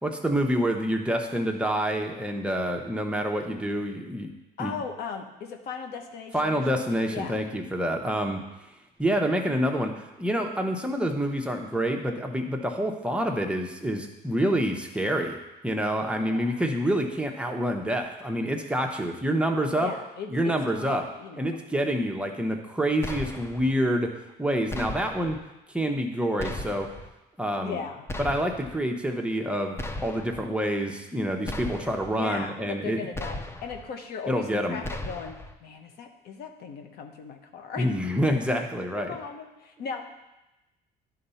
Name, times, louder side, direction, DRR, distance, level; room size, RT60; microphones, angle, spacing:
voice 1, 0.0-4.3 4.6-4.7 6.3-8.4 9.0-15.4 15.6-19.9 20.3-21.0 21.4-25.4 25.7-26.9 27.4-27.8 28.2-33.0 34.3-34.8 37.8-39.1, equal, 5° right, 2 dB, 0.9 m, -27 dB
voice 2, 4.6-6.8 7.1-7.4 16.3-16.6 19.8-21.6 27.6-28.0 32.1-32.5 32.8-33.4 33.6-37.9 39.0-40.0, left 6 dB, 70° left, 5 dB, 1.1 m, -37 dB
sound 1, 23.0-23.7 24.7-25.4 26.4-27.1 28.1-28.8 29.8-30.5 31.5-32.2 33.1-33.8 34.8-35.5, left 1 dB, 15° left, 0.6 m, -36 dB
11.0 x 4.0 x 5.6 m, 0.99 s
cardioid pair, 110°, 17 cm